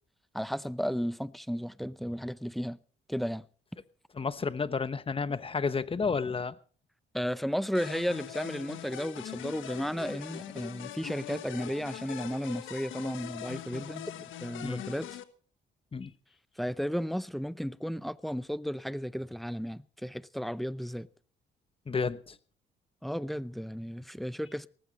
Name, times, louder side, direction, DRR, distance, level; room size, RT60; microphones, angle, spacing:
voice 1, 0.3-2.8 3.1-3.5 7.1-15.2 16.6-21.1 23.0-24.7, equal, ahead, 0.6 m, -34 dB
voice 2, 4.2-6.6 14.6-14.8 15.9-16.1 21.9-22.4, left 5 dB, 30° left, 1.1 m, -31 dB
sound 1, 7.7-15.2, left 12 dB, 80° left, 1.3 m, -42 dB
18.5 x 14.5 x 4.2 m
cardioid pair, 90°, 20 cm